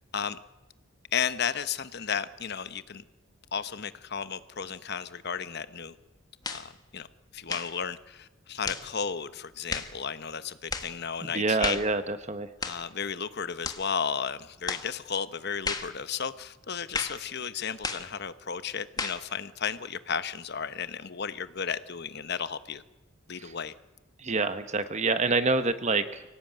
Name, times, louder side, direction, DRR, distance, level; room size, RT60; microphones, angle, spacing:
voice 1, 1.1-3.0 3.5-6.0 6.5-7.1 7.3-11.8 12.6-22.8 23.3-23.7, left 7 dB, 50° left, 13 dB, 1.0 m, -34 dB
sound 1, 6.4-6.7 7.5-7.8 8.6-8.9 9.7-9.9 10.7-10.9 11.6-11.9 12.6-12.9 13.6-13.9 14.7-14.9 15.6-15.9 16.9-17.2 17.8-18.1 19.0-19.2, left 4 dB, 20° left, 1.4 m, -33 dB
voice 2, 11.2-12.5 23.4-23.5 24.2-26.2, right 3 dB, 35° right, 11 dB, 1.0 m, -27 dB
24.0 x 17.5 x 9.1 m, 1.1 s
head